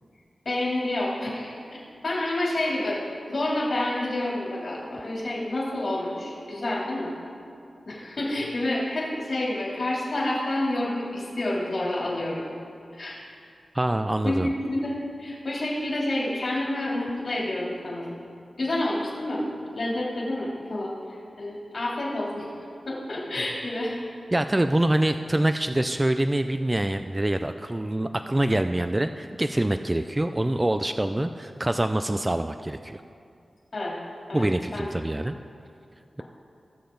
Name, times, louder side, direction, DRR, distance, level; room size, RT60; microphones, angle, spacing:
voice 1, 0.4-1.6 2.0-3.0 3.3-7.1 7.9-12.5 13.0-13.2 14.2-18.1 18.6-19.4 19.7-20.9 21.4-22.5 22.9-24.0 33.7-33.9 34.3-34.4 34.7-34.9, left 1 dB, 60° left, -5 dB, 3.0 m, -28 dB
voice 2, 13.7-14.5 24.3-33.0 34.3-35.4, right 1 dB, 20° right, 8 dB, 0.4 m, -25 dB
18.0 x 6.8 x 3.9 m, 2.4 s
cardioid pair, 65°, 0 cm